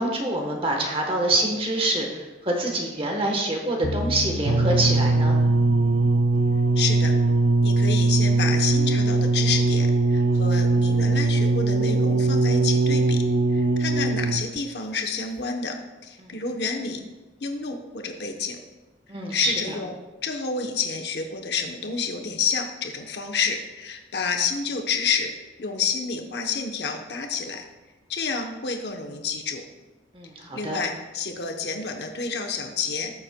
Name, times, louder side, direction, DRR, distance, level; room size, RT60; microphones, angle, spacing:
voice 1, 0.0-5.4 16.2-16.4 19.1-19.8 30.1-30.8, right 2 dB, 30° right, 1 dB, 1.1 m, -26 dB
sound 1, 3.8-7.6, left 2 dB, 35° left, 0.4 m, -34 dB
sound 2, 4.5-14.6 15.4-15.5, right 3 dB, 75° right, 0.5 m, -21 dB
voice 2, 6.8-7.1 7.6-13.2 13.5-15.8 16.0-17.0 17.4-18.6 19.3-19.9 20.2-25.3 25.6-27.6 28.1-29.6 30.5-33.1, left 5 dB, 65° left, 4 dB, 0.9 m, -29 dB
14.0 x 7.4 x 2.2 m, 1.2 s
head